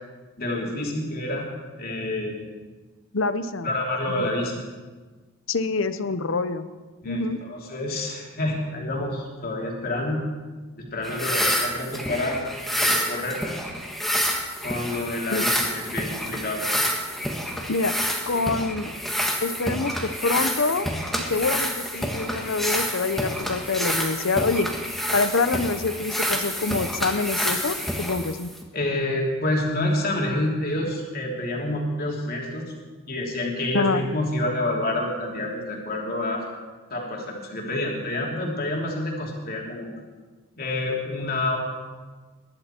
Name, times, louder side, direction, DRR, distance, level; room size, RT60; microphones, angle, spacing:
voice 1, 0.4-1.5 1.8-2.4 3.6-4.6 7.0-10.2 10.8-12.4 12.8-13.4 14.6-16.6 28.7-32.7 33.1-36.4 36.9-39.9 40.6-41.6, left 1 dB, 45° left, -1 dB, 2.9 m, -28 dB
voice 2, 3.1-3.7 4.2-4.3 5.5-6.7 7.0-7.4 15.3-15.5 17.7-18.0 18.3-19.0 19.4-20.9 21.2-24.7 25.1-28.5 33.7-34.0, left 3 dB, 70° left, 12 dB, 0.8 m, -26 dB
sound 1, 11.0-28.6, equal, ahead, 1.5 m, -28 dB
21.0 x 11.5 x 4.5 m, 1.4 s
head